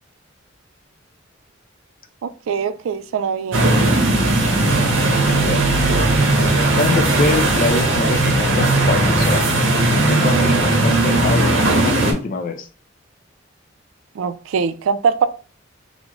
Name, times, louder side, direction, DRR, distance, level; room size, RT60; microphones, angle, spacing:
voice 1, 2.2-3.7 14.2-15.3, right 6 dB, 90° right, 0.3 m, -22 dB
sound 1, 3.5-12.1, right 2 dB, 70° right, 0.9 m, -17 dB
voice 2, 4.7-5.6 6.7-9.5 10.1-12.7, left 3 dB, 45° left, 0.4 m, -24 dB
3.6 x 2.0 x 3.0 m
head